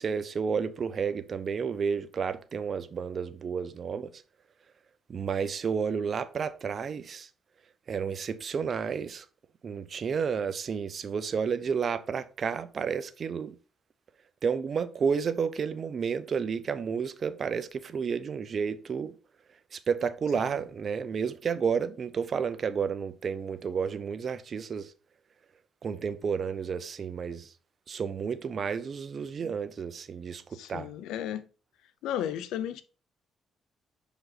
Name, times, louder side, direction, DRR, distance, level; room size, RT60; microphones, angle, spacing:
voice 1, 0.0-4.2 5.1-7.3 7.9-9.2 9.6-13.5 14.4-19.1 19.7-24.9 25.8-27.5 27.9-30.9, right 6 dB, 50° right, 0.8 m, -31 dB
voice 2, 30.5-31.4 32.0-32.8, left 10 dB, 90° left, 0.6 m, -34 dB
6.3 x 5.1 x 4.1 m
cardioid pair, 90°, 0 cm